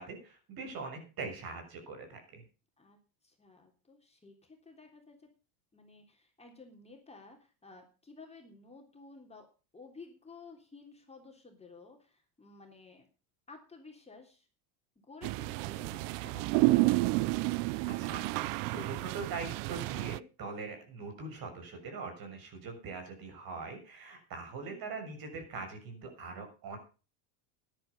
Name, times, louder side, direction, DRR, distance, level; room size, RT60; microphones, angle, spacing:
voice 1, 0.0-2.4 17.8-18.2 18.6-26.8, right 4 dB, 50° right, 5 dB, 6.6 m, -42 dB
voice 2, 3.2-5.3 5.7-9.5 9.7-13.1 13.5-14.5 15.0-17.0 24.6-25.1, left 3 dB, 15° left, 2 dB, 3.4 m, -54 dB
sound 1, 15.2-20.2, right 21 dB, 70° right, 0.7 m, -30 dB
13.0 x 11.0 x 5.4 m, 0.34 s
supercardioid pair, 115°, 44 cm